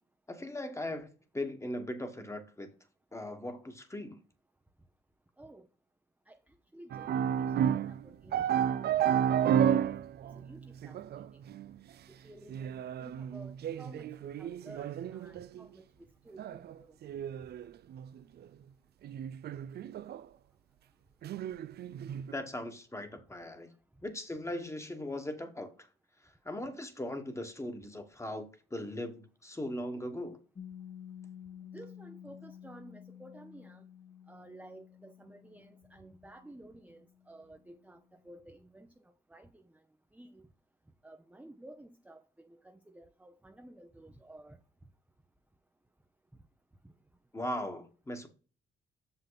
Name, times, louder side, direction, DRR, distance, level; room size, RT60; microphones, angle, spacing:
voice 1, 0.3-2.7 3.1-4.2 22.3-23.7 24.0-25.7 26.4-30.4 47.3-48.3, left 1 dB, 15° left, 1.5 m, -39 dB
voice 2, 6.7-8.5 8.8-9.3 9.6-10.0 10.3-11.3 12.2-14.1 14.4-15.8 16.2-16.9 31.6-33.8 34.3-38.9 39.3-39.6 40.1-40.5 41.0-44.6, right 1 dB, 5° right, 0.7 m, -53 dB
sound 1, 6.9-8.0 8.3-11.7 12.5-15.6 16.4-16.7 17.0-18.2 18.4-18.5 19.0-20.2 21.2-22.3, right 9 dB, 55° right, 0.4 m, -32 dB
Piano, 30.6-37.8, left 9 dB, 35° left, 1.4 m, -52 dB
6.9 x 5.7 x 4.0 m
cardioid pair, 90°, 20 cm